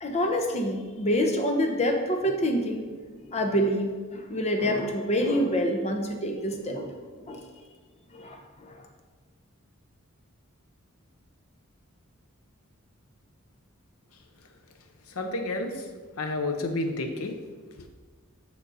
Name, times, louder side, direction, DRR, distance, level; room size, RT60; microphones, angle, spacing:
voice 1, 0.0-2.9 3.3-7.0 7.3-7.5 8.1-8.7, equal, 30° left, 4 dB, 0.8 m, -27 dB
voice 2, 15.2-15.7 16.2-17.3, left 2 dB, 80° left, 6 dB, 0.8 m, -29 dB
7.1 x 6.2 x 4.1 m, 1.5 s
head